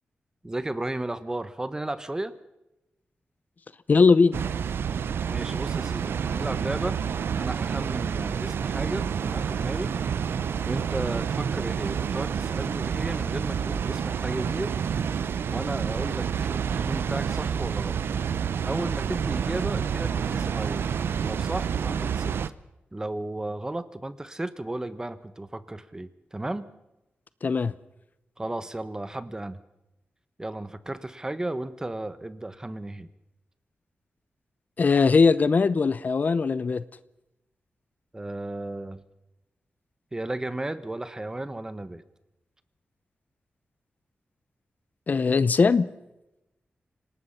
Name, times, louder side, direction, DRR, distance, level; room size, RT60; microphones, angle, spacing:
voice 1, 0.4-2.3 5.3-7.0 7.3-9.9 10.6-14.7 15.5-18.0 18.6-20.9 21.2-22.3 22.9-26.7 28.4-29.6 30.4-33.1 38.1-39.0 40.1-42.0, right 1 dB, 15° right, 14 dB, 1.2 m, -34 dB
voice 2, 3.9-4.4 27.4-27.7 34.8-36.8 45.1-45.9, left 4 dB, 50° left, 16 dB, 0.8 m, -20 dB
Water, 4.3-22.5, right 7 dB, 90° right, 0.8 m, -28 dB
27.0 x 18.5 x 5.7 m, 0.94 s
wide cardioid pair, 115°, 4 cm